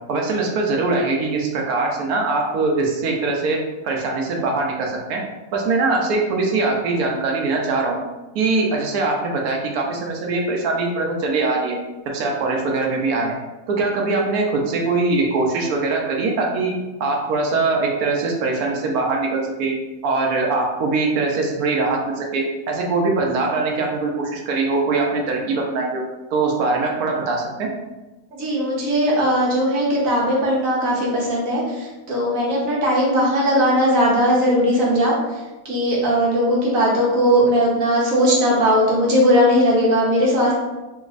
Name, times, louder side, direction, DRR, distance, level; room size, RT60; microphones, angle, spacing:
voice 1, 0.1-3.6 3.8-5.2 5.5-8.0 8.3-11.8 12.1-13.3 13.7-16.7 17.0-19.7 20.0-26.0 26.3-27.7, right 3 dB, 85° right, 0 dB, 1.1 m, -22 dB
voice 2, 28.3-35.2 35.6-40.5, equal, 70° right, -4 dB, 1.3 m, -18 dB
3.4 x 3.0 x 2.4 m, 1.1 s
omnidirectional pair, 1.5 m